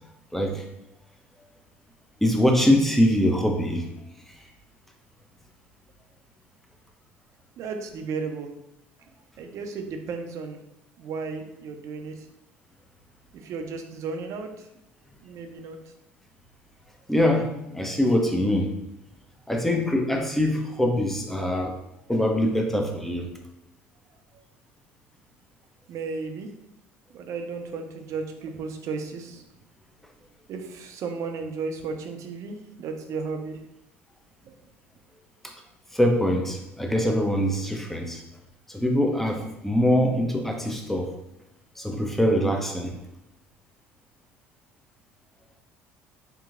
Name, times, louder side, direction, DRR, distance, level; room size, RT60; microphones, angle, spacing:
voice 1, 0.3-0.7 2.2-3.9 17.1-18.7 19.5-21.7 22.1-23.3 35.4-35.5 35.9-38.2 38.7-41.1 41.8-42.9, left 1 dB, 5° left, 2 dB, 0.5 m, -23 dB
voice 2, 7.6-8.5 9.4-10.6 11.0-12.3 13.3-14.7 15.2-15.8 25.9-26.5 27.1-29.4 30.5-33.6 34.4-34.5, right 4 dB, 55° right, 5 dB, 0.4 m, -34 dB
2.8 x 2.6 x 2.4 m, 0.87 s
hypercardioid pair, 65°, 6 cm